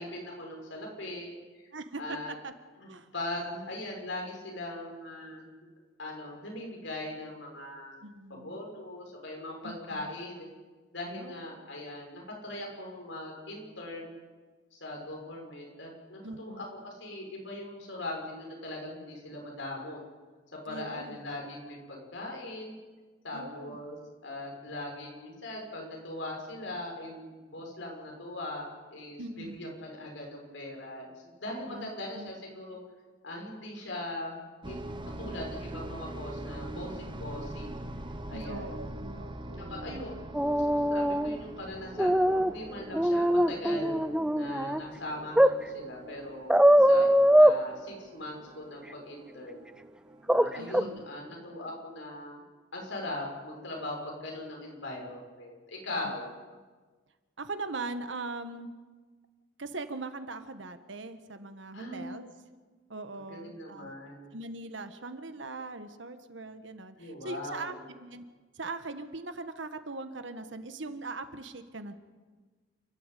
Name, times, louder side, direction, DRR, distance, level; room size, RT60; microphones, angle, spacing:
voice 1, 0.0-1.3 1.6-1.7 2.0-2.3 2.8-5.5 6.0-8.0 8.3-10.5 10.9-14.2 14.7-20.0 20.5-22.8 23.2-24.0 24.2-28.7 28.9-31.1 31.4-32.8 33.2-37.8 38.3-38.6 39.7-40.1 40.7-44.0 44.3-47.1 47.3-49.6 50.3-52.4 52.7-56.3 61.7-62.2 63.3-64.2 67.0-67.8, left 1 dB, 70° left, 0 dB, 6.3 m, -40 dB
voice 2, 1.7-2.5 2.9-3.1 8.0-8.6 9.6-10.1 11.2-11.4 16.2-16.7 20.7-21.2 23.3-23.8 29.2-29.6 31.7-32.3 38.3-40.0 50.6-51.0 56.0-56.2 57.4-58.7 59.6-62.2 62.9-63.9 64.3-68.2 68.5-71.9, right 3 dB, 70° right, 9 dB, 1.5 m, -41 dB
sound 1, 34.6-51.3, right 1 dB, 25° right, 1.2 m, -44 dB
sound 2, 40.3-41.4 42.0-42.5 42.9-44.8 45.4-45.5 46.5-47.6 50.3-50.5 50.7-50.8, equal, 5° right, 0.6 m, -22 dB
29.0 x 12.5 x 8.5 m, 1.4 s
head